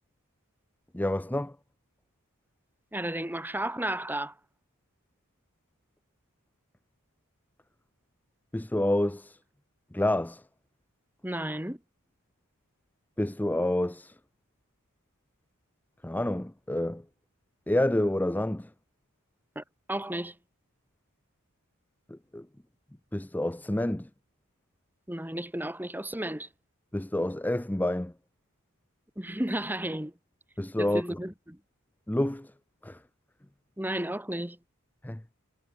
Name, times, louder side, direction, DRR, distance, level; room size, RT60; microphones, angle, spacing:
voice 1, 0.9-1.6 8.5-9.4 9.9-10.4 13.2-14.2 16.0-17.0 17.7-18.7 22.1-22.5 23.1-24.1 26.9-28.1 30.6-31.2 32.1-32.5 32.8-33.0 35.0-35.2, left 1 dB, 10° left, 0.6 m, -28 dB
voice 2, 2.9-4.3 11.2-11.8 19.5-19.6 19.9-20.3 25.1-26.5 29.2-30.1 30.8-31.6 33.8-34.6, right 1 dB, 10° right, 3.2 m, -33 dB
head